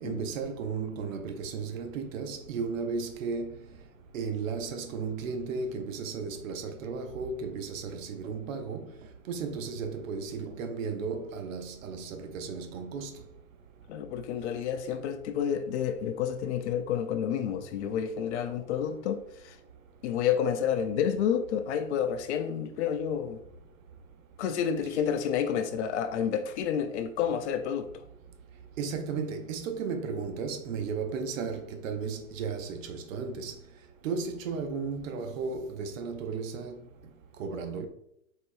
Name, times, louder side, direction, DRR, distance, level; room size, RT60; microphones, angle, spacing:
voice 1, 0.0-3.5 4.1-8.9 9.3-13.1 28.8-33.5 34.0-36.8 37.4-37.9, right 5 dB, 65° right, 0.8 m, -34 dB
voice 2, 13.9-19.2 19.4-19.5 20.0-23.4 24.4-27.9, left 8 dB, 50° left, 0.7 m, -29 dB
4.4 x 4.1 x 2.6 m
hypercardioid pair, 130°, 44 cm